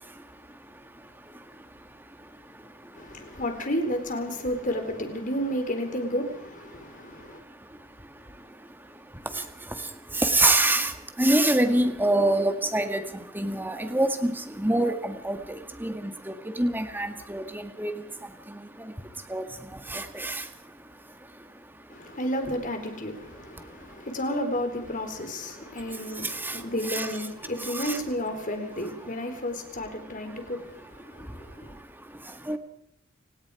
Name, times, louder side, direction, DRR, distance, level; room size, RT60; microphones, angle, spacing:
voice 1, 0.0-3.4 6.7-22.2 23.3-24.1 25.4-27.2 27.6-28.0 28.8-29.4 29.9-32.6, right 1 dB, 10° right, 1.9 m, -30 dB
voice 2, 2.9-7.4 21.9-31.8, equal, 40° left, 3.9 m, -32 dB
29.5 x 18.5 x 4.9 m
head